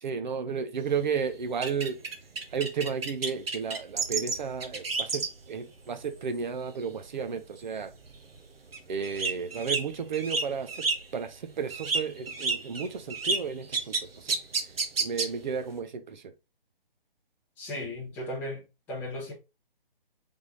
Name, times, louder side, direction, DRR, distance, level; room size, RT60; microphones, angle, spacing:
voice 1, 0.0-2.0 2.5-5.2 5.5-7.9 8.9-10.8 11.1-14.4 15.0-16.3, right 6 dB, 50° right, 0.7 m, -33 dB
sound 1, 0.8-5.5 5.8-6.1 6.6-7.1 7.3-7.4 7.8-11.3 11.6-15.7, right 4 dB, 80° right, 1.0 m, -31 dB
voice 2, 17.6-19.3, left 1 dB, 5° left, 0.7 m, -36 dB
3.6 x 3.4 x 3.8 m
hypercardioid pair, 150°, 29 cm